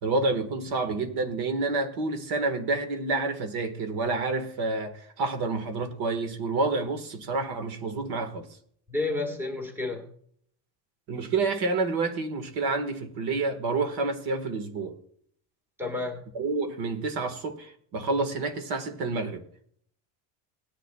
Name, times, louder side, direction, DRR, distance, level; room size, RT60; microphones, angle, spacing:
voice 1, 0.0-8.5 11.1-15.0 16.3-19.4, right 3 dB, 50° right, 1.6 m, -29 dB
voice 2, 8.9-10.0 15.8-16.2, left 3 dB, 5° right, 1.6 m, -30 dB
19.0 x 10.0 x 2.3 m
cardioid pair, 180°, 48 cm